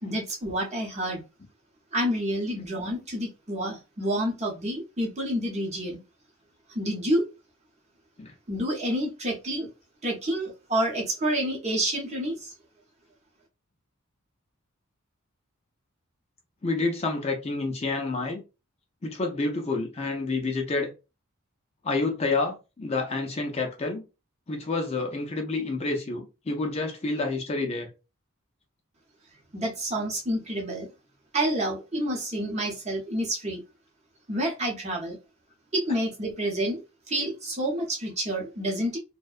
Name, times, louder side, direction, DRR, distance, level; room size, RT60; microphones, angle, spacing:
voice 1, 0.0-1.2 1.9-6.0 6.7-7.2 8.5-9.7 10.0-12.5 29.5-30.9 31.3-33.6 34.3-35.2 35.7-36.8 37.1-39.0, right 1 dB, 30° right, 0.7 m, -28 dB
voice 2, 16.6-18.4 19.0-20.9 21.8-24.0 24.5-27.9, left 3 dB, 30° left, 0.4 m, -29 dB
2.6 x 2.1 x 2.3 m
head